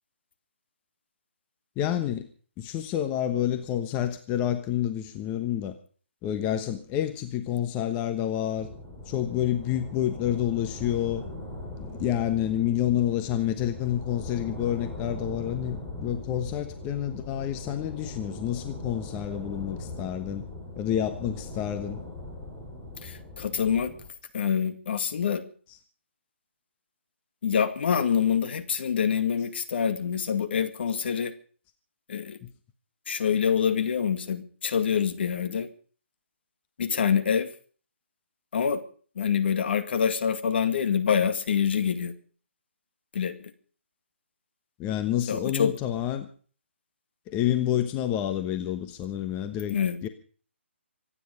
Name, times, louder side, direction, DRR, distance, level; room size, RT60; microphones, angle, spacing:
voice 1, 1.8-2.3 2.6-5.8 6.2-8.7 9.0-11.2 11.8-20.5 20.8-22.0 32.4-32.5 44.8-46.3 47.3-50.1, left 11 dB, 20° left, 8 dB, 1.2 m, -28 dB
sound 1, 8.6-24.1, left 2 dB, 5° left, 4.8 m, -40 dB
voice 2, 23.0-23.9 24.3-25.4 27.4-31.3 32.1-32.4 33.1-35.7 36.8-37.5 38.5-38.8 39.2-42.1 43.1-43.4 45.3-45.7 49.7-50.0, left 7 dB, 55° left, 9 dB, 2.2 m, -26 dB
25.5 x 9.9 x 5.3 m, 0.43 s
figure-of-eight pair, 145°, 7 cm